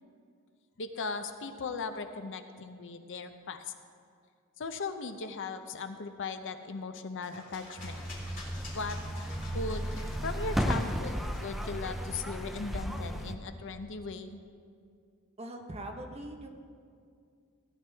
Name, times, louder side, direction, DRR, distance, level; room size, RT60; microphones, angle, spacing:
voice 1, 0.8-3.6 4.6-8.0 8.7-9.0 9.5-9.9 10.2-14.4, left 4 dB, 60° left, 8 dB, 0.7 m, -38 dB
sound 1, 7.2-12.4, left 2 dB, 40° left, 3.3 m, -50 dB
sound 2, 7.8-13.4, equal, ahead, 0.5 m, -34 dB
voice 2, 15.4-16.5, right 1 dB, 30° right, 2 dB, 1.0 m, -41 dB
16.5 x 10.5 x 3.4 m, 2.3 s
head